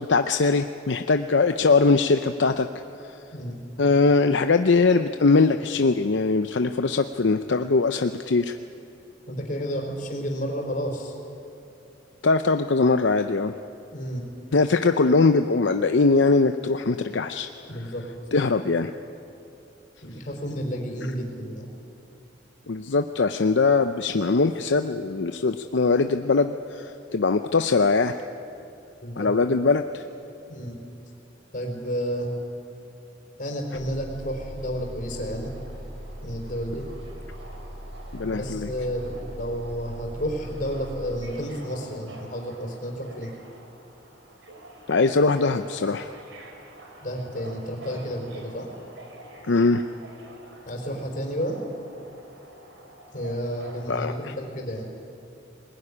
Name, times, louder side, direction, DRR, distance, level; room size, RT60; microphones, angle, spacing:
voice 1, 0.0-2.7 3.8-8.6 12.2-13.5 14.5-17.5 18.3-18.9 22.7-28.2 29.2-30.0 38.1-38.7 44.9-46.1 49.5-49.8 53.9-54.3, left 3 dB, 75° left, 8 dB, 0.6 m, -21 dB
voice 2, 9.3-11.2 13.9-14.2 17.7-18.0 20.0-21.7 29.0-29.3 30.5-30.7 31.5-32.3 33.4-35.5 36.2-36.8 38.2-43.3 47.0-48.7 50.6-51.6 53.1-54.9, equal, 45° left, 1 dB, 4.6 m, -31 dB
Bus, 33.7-41.3, equal, 35° right, 1.9 m, -40 dB
Subway metro underground, 35.0-54.0, right 1 dB, 85° right, 3.6 m, -48 dB
21.0 x 20.5 x 9.9 m, 2.7 s
head